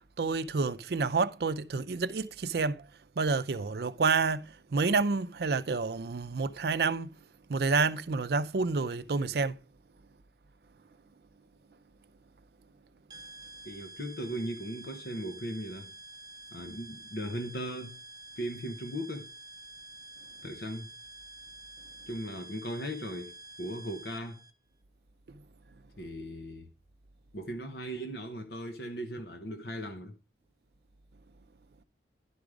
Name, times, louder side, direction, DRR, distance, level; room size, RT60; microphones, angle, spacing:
voice 1, 0.0-2.9 3.2-7.2 7.5-9.6 25.3-25.4, right 4 dB, 65° right, 0.5 m, -29 dB
sound 1, 13.1-24.5, right 1 dB, 20° right, 0.9 m, -49 dB
voice 2, 13.6-15.9 16.5-18.0 18.4-19.3 20.4-20.9 22.1-24.4 26.0-26.7 27.3-30.1, equal, 65° left, 0.9 m, -38 dB
11.0 x 5.1 x 4.8 m
head